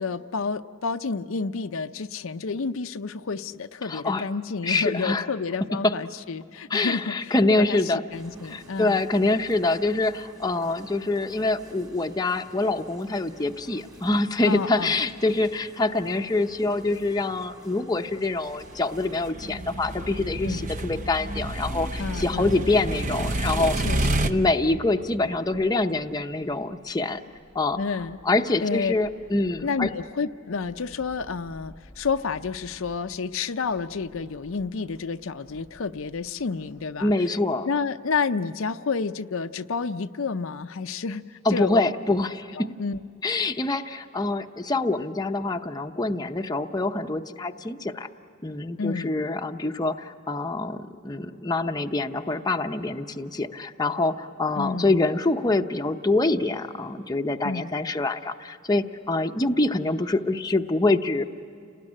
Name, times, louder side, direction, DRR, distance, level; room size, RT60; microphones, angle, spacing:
voice 1, 0.0-7.8 8.1-9.0 14.5-15.0 20.4-20.7 22.0-22.5 23.8-24.4 27.8-28.2 28.6-28.9 29.6-37.1 37.6-41.8 42.6-43.0 48.8-49.1 54.6-55.0 57.4-57.7, left 4 dB, 65° left, 9 dB, 0.6 m, -30 dB
voice 2, 3.9-4.2 4.6-5.3 5.7-6.0 6.7-8.0 8.5-23.9 24.2-27.2 27.5-27.8 28.2-29.9 37.0-37.7 41.4-42.8 43.2-48.1 48.4-61.2, left 2 dB, 20° left, 5 dB, 0.7 m, -25 dB
sound 1, 8.1-19.3, right 1 dB, 20° right, 2.2 m, -51 dB
sound 2, 18.8-24.3, right 1 dB, 35° right, 0.8 m, -29 dB
sound 3, 19.8-36.9, equal, 65° right, 5.8 m, -52 dB
29.5 x 19.5 x 9.9 m, 2.6 s
head